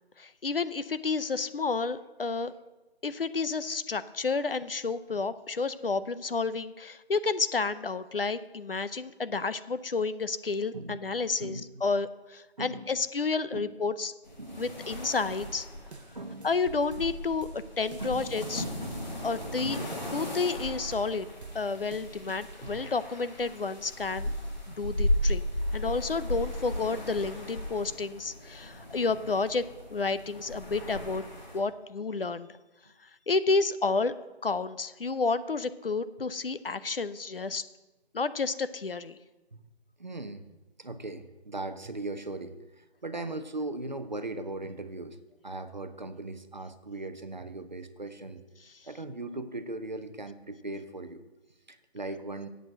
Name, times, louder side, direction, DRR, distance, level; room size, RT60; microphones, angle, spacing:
voice 1, 0.2-2.5 3.0-14.1 14.6-15.7 16.4-18.6 19.2-19.8 20.1-21.3 21.5-24.3 24.7-25.4 25.7-31.2 31.5-32.5 33.3-34.1 34.4-37.6 38.1-39.2, left 4 dB, 60° left, 14 dB, 0.6 m, -30 dB
voice 2, 10.7-11.1 11.4-11.8 12.6-12.9 13.5-13.6 14.4-14.7 15.3-15.5 16.1-16.5 18.0-18.4 18.8-19.2 22.6-22.8 24.7-24.9 40.0-40.5 40.8-45.2 45.4-48.4 48.8-51.2 51.7-52.5, right 2 dB, 45° right, 10 dB, 0.7 m, -39 dB
sound 1, 14.2-31.6, left 1 dB, 45° left, 2.2 m, -36 dB
sound 2, 14.9-22.9, right 3 dB, 85° right, 0.8 m, -47 dB
7.8 x 7.5 x 7.7 m, 1.1 s
figure-of-eight pair, 175°, 32 cm